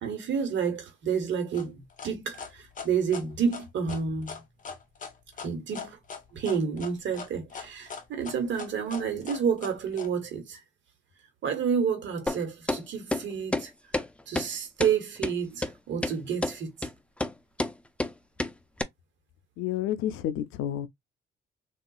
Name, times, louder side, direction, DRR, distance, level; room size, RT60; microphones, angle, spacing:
voice 1, 0.0-4.4 5.4-6.0 6.3-10.6 11.4-13.7 14.3-16.9, right 6 dB, 70° right, 1.2 m, -30 dB
sound 1, 1.5-10.1, left 5 dB, 40° left, 0.9 m, -40 dB
sound 2, 12.3-12.4 12.7-12.8 13.1-13.2 13.5-13.7 13.9-14.1 14.4-14.5 14.8-14.9 15.2-15.3 15.6-15.7 16.0-16.2 16.4-16.6 16.8-16.9 17.2-17.3 17.6-17.7 18.0-18.1 18.4-18.5 18.8-18.9, left 2 dB, 5° left, 0.3 m, -28 dB
voice 2, 19.6-20.9, left 11 dB, 90° left, 0.4 m, -30 dB
3.6 x 2.4 x 2.3 m
cardioid pair, 90°, 20 cm